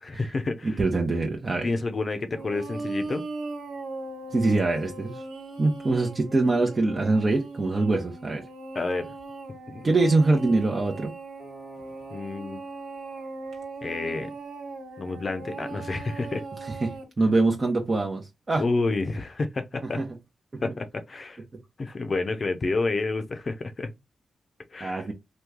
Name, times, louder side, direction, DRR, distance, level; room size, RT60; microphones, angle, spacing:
voice 1, 0.0-0.8 1.6-3.2 8.7-9.1 9.7-9.9 12.1-12.6 13.8-14.3 15.0-16.5 18.6-20.0 20.6-21.4 21.8-23.9 24.7-25.1, left 3 dB, 45° left, 0.6 m, -29 dB
voice 2, 0.6-1.7 4.3-5.1 5.6-8.4 9.8-11.1 16.8-18.6 20.0-20.1 24.8-25.1, right 3 dB, 40° right, 0.8 m, -24 dB
sound 1, 2.3-17.0, right 3 dB, 80° right, 1.4 m, -39 dB
3.0 x 2.3 x 3.5 m
cardioid pair, 55°, 0 cm